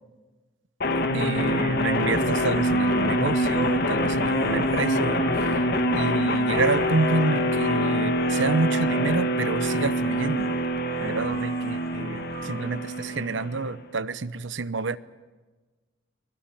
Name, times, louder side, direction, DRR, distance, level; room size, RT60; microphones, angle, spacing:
sound 1, 0.8-13.8, equal, 55° left, 1.8 m, -25 dB
voice 1, 1.1-5.6 5.9-10.6 11.0-15.0, right 3 dB, 70° right, 15 dB, 0.9 m, -28 dB
sound 2, 2.4-3.6 4.2-12.8, right 4 dB, 50° right, 4.6 m, -46 dB
23.5 x 19.0 x 10.0 m, 1.3 s
head